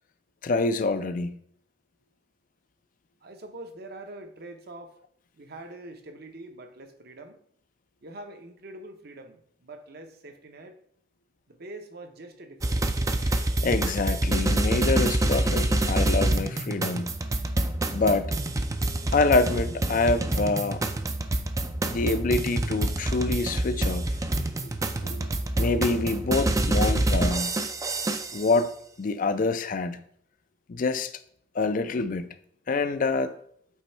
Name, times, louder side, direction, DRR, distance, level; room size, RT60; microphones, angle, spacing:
voice 1, 0.4-1.4 13.2-17.1 17.9-18.3 19.1-20.8 21.9-24.1 25.0-27.5 28.3-28.7 29.0-30.0 30.7-31.1 31.5-32.3 32.7-33.3, left 3 dB, 45° left, 11 dB, 0.4 m, -26 dB
voice 2, 3.2-5.0 5.3-7.4 8.0-10.8 11.5-12.9, right 2 dB, 55° right, 7 dB, 0.8 m, -44 dB
sound 1, 12.6-28.5, right 1 dB, 15° right, 0.4 m, -26 dB
8.2 x 3.1 x 4.4 m, 0.65 s
head